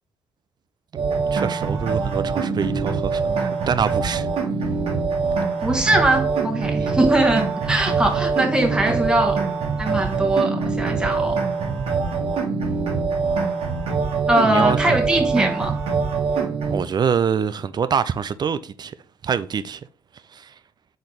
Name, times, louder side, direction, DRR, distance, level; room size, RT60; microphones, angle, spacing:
voice 1, 1.0-4.3 6.8-6.9 14.4-14.8 16.7-18.9 19.2-19.8 20.3-20.5, right 7 dB, 40° right, 0.4 m, -25 dB
sound 1, 1.0-16.8, right 4 dB, 65° right, 1.1 m, -24 dB
voice 2, 5.6-9.4 9.8-11.4 14.3-15.7, right 1 dB, 10° right, 1.2 m, -21 dB
4.1 x 3.9 x 3.2 m
hypercardioid pair, 45°, 11 cm